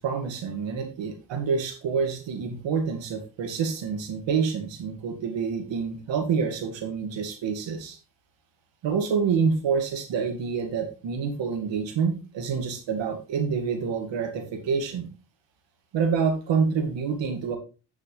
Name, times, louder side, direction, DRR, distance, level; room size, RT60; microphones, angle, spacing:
voice 1, 0.0-8.0 8.8-15.1 15.9-17.6, right 5 dB, 80° right, 6 dB, 2.2 m, -27 dB
10.5 x 6.6 x 3.3 m, 0.31 s
cardioid pair, 70°, 43 cm